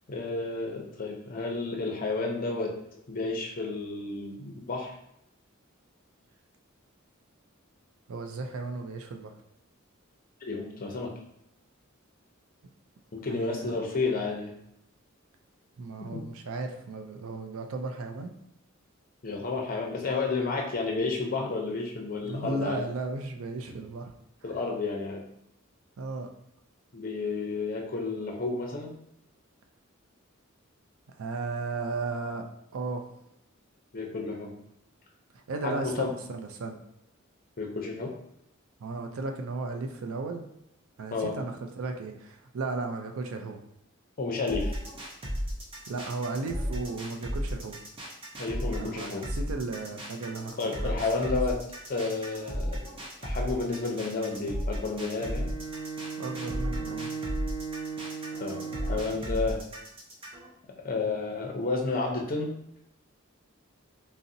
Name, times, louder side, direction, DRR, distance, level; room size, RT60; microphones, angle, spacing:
voice 1, 0.1-2.7 3.1-4.9 10.4-11.1 13.2-14.5 16.0-16.2 19.2-22.8 24.4-25.2 26.9-28.9 33.9-34.5 35.6-36.2 37.6-38.1 41.1-41.3 44.2-44.7 48.4-49.3 50.6-51.6 51.9-52.8 53.2-55.5 58.4-59.6 60.8-62.5, left 3 dB, 45° left, 1 dB, 0.5 m, -31 dB
voice 2, 8.1-9.3 13.3-13.8 15.8-18.3 22.2-24.1 26.0-26.3 31.2-32.4 32.7-33.1 35.3-36.8 38.8-40.4 41.0-43.6 45.9-47.8 48.8-51.0 56.2-57.1, right 3 dB, 75° right, 4 dB, 0.4 m, -35 dB
sound 1, 44.5-60.5, equal, 25° right, 0.6 m, -35 dB
Bowed string instrument, 55.2-59.3, right 5 dB, 10° right, 1.0 m, -37 dB
3.8 x 2.0 x 2.6 m, 0.79 s
head